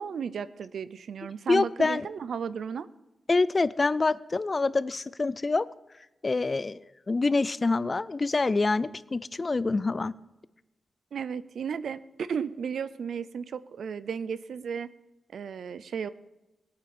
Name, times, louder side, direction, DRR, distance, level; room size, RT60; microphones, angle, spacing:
voice 1, 0.0-2.9 11.1-14.9 15.3-16.1, right 7 dB, 90° right, 16 dB, 0.6 m, -34 dB
voice 2, 1.5-2.1 3.3-5.6 6.2-10.1, left 3 dB, 35° left, 17 dB, 0.5 m, -26 dB
21.5 x 8.6 x 4.4 m, 1.0 s
wide cardioid pair, 95°, 0 cm